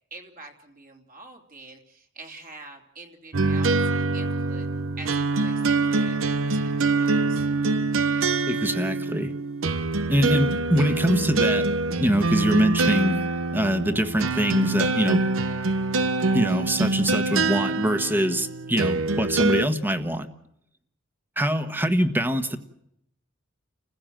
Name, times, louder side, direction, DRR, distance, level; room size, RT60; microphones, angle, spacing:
voice 1, 0.1-4.7 5.0-5.6 5.9-7.5 12.4-12.5 18.9-19.1, right 3 dB, 45° right, 3 dB, 3.0 m, -46 dB
sound 1, 3.3-19.7, right 3 dB, 80° right, 0.9 m, -24 dB
voice 2, 8.5-9.3 10.1-11.7 12.0-13.2 13.5-15.3 16.3-20.3 21.4-22.6, equal, 10° right, 8 dB, 1.3 m, -24 dB
30.0 x 15.5 x 7.6 m, 0.77 s
head